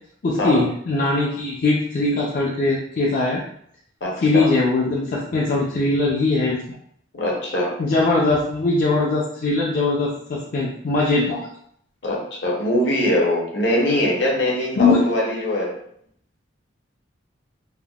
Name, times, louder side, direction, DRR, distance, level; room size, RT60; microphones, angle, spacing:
voice 1, 0.2-3.4 4.2-6.8 7.8-11.5 14.8-15.0, left 3 dB, 45° left, -4 dB, 0.4 m, -21 dB
voice 2, 4.0-4.5 7.1-7.7 12.0-15.8, left 1 dB, 65° left, -1 dB, 0.7 m, -22 dB
3.4 x 2.1 x 2.3 m, 0.66 s
head